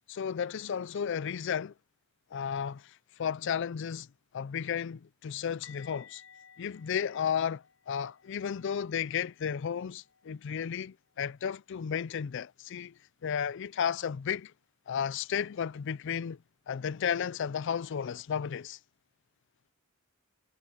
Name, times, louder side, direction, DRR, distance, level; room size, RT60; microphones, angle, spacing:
voice 1, 0.1-1.7 2.3-2.8 3.2-4.1 4.3-6.2 6.6-12.9 13.2-14.5 14.9-16.4 16.7-18.8, left 7 dB, 60° left, 0.4 m, -33 dB
sound 1, 5.6-11.4 11.7-11.9 12.2-12.4 15.6-15.7, left 7 dB, 80° left, 5.0 m, -58 dB
head